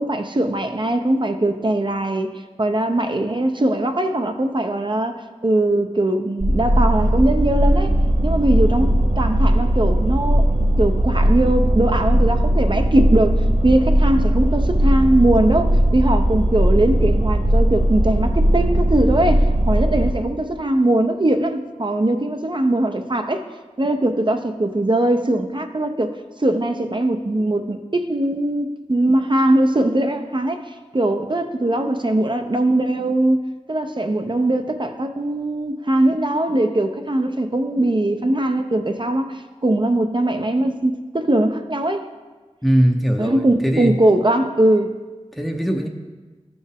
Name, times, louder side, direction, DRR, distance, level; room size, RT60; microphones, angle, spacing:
voice 1, 0.0-7.9 8.2-10.5 10.8-23.4 23.8-33.4 33.7-42.1 43.2-44.9, right 1 dB, 40° right, 6 dB, 0.5 m, -20 dB
sound 1, 6.4-20.1, right 1 dB, 55° right, 1.7 m, -18 dB
voice 2, 42.6-44.0 45.3-45.9, equal, ahead, 3 dB, 0.6 m, -20 dB
13.0 x 4.3 x 3.5 m, 1.3 s
wide cardioid pair, 50°, 12 cm